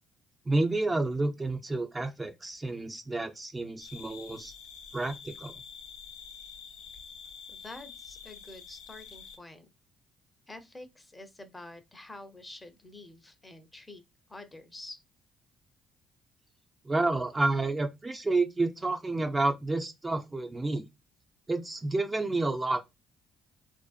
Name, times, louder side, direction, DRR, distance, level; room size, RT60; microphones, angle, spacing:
voice 1, 0.5-4.5 4.9-5.5 16.8-20.8 21.5-22.9, right 2 dB, 25° right, 0.5 m, -30 dB
sound 1, 3.8-9.4, left 7 dB, 75° left, 0.5 m, -47 dB
voice 2, 7.5-9.7 10.5-14.0 14.3-15.0, left 2 dB, 20° left, 0.6 m, -47 dB
2.5 x 2.1 x 2.3 m
hypercardioid pair, 50°, 0 cm